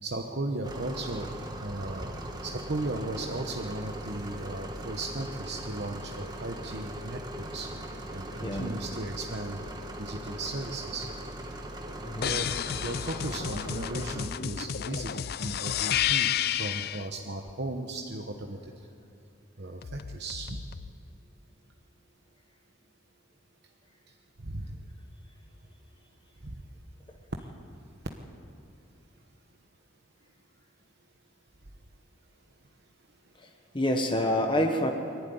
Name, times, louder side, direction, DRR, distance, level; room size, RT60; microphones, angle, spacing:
voice 1, 0.0-2.1 2.4-7.7 8.1-9.6 10.0-11.1 12.2-12.5 12.8-16.3 16.6-18.6 19.6-20.6 24.4-24.8 26.4-26.6, right 2 dB, 55° right, 3 dB, 1.1 m, -36 dB
sound 1, 0.6-14.3, right 1 dB, 20° right, 1.4 m, -40 dB
voice 2, 8.4-8.7 12.0-12.3 33.4-33.5 33.7-34.9, left 1 dB, 25° left, 4 dB, 1.2 m, -27 dB
sound 2, 12.2-17.1 19.8-20.9, left 10 dB, 50° left, 0.4 m, -31 dB
23.5 x 12.0 x 9.5 m, 2.7 s
head